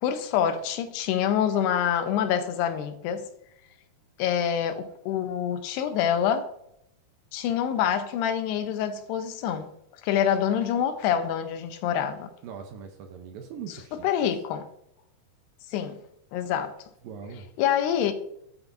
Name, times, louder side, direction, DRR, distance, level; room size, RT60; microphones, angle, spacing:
voice 1, 0.0-3.3 4.2-6.5 7.3-9.7 10.0-12.3 14.0-14.6 15.7-16.0 16.3-16.7 17.6-18.1, left 9 dB, 90° left, 2.8 m, -26 dB
voice 2, 12.4-14.1 17.0-17.5, right 6 dB, 75° right, 2.2 m, -41 dB
12.5 x 6.0 x 2.6 m
omnidirectional pair, 4.6 m